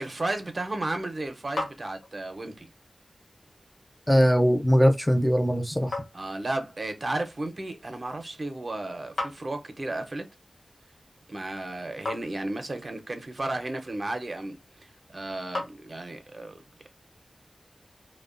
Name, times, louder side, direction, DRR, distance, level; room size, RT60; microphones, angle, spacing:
voice 1, 0.0-2.7 6.1-10.2 11.3-16.6, right 2 dB, 50° right, 0.5 m, -33 dB
sound 1, 1.2-16.4, left 2 dB, 85° left, 0.8 m, -42 dB
voice 2, 4.1-5.9, equal, 5° left, 0.5 m, -21 dB
2.7 x 2.1 x 2.4 m
wide cardioid pair, 75°, 0 cm